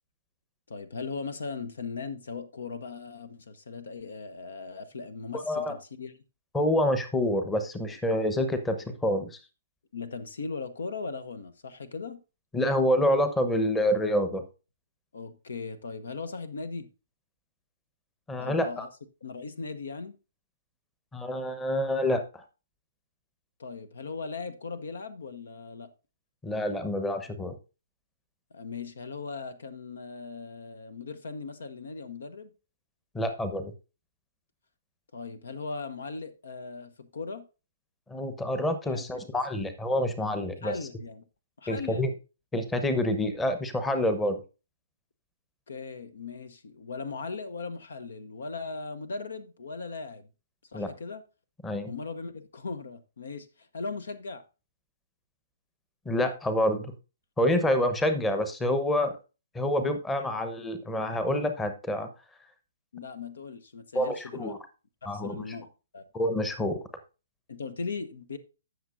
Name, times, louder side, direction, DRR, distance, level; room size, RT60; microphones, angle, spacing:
voice 1, 0.7-6.2 9.9-12.2 15.1-16.9 18.4-18.9 19.2-20.2 23.6-25.9 28.5-32.5 35.1-37.4 38.9-39.3 40.6-41.2 41.6-42.2 45.7-50.3 50.7-51.2 51.9-54.4 62.9-64.5 65.0-65.7 65.9-66.1 67.5-68.4, left 4 dB, 65° left, 0.9 m, -38 dB
voice 2, 5.3-5.7 6.5-9.4 12.5-14.4 18.3-18.9 21.1-22.4 26.4-27.5 33.1-33.7 38.1-40.7 41.7-42.1 42.5-44.4 50.7-50.9 51.6-51.9 56.0-56.9 57.4-59.1 59.5-62.1 63.9-64.6 65.1-65.4 66.1-66.8, left 1 dB, 10° left, 1.0 m, -27 dB
15.0 x 6.4 x 2.6 m
figure-of-eight pair, 125°, 0 cm